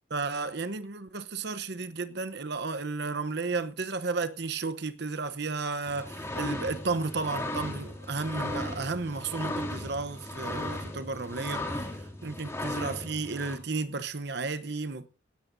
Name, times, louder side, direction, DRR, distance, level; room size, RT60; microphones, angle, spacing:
voice 1, 0.1-11.9 12.2-15.1, right 3 dB, 55° right, 0.9 m, -33 dB
sound 1, 5.9-13.6, left 1 dB, 15° left, 2.7 m, -36 dB
19.0 x 16.5 x 2.7 m
head